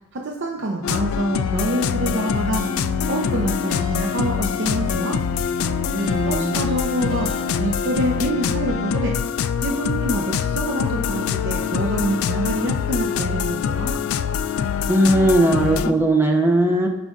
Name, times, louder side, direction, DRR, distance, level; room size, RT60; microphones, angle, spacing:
voice 1, 0.1-2.7 3.1-5.2 6.2-7.3 7.6-9.2 9.6-14.0, right 2 dB, 60° right, 1 dB, 0.6 m, -26 dB
sound 1, 0.8-15.9, left 7 dB, 80° left, 0.3 m, -24 dB
sound 2, 2.6-8.3, right 1 dB, 50° left, 2.9 m, -36 dB
voice 2, 5.9-6.6 14.9-16.9, right 1 dB, 10° right, 1 dB, 0.8 m, -18 dB
13.5 x 5.0 x 2.5 m, 1.0 s
head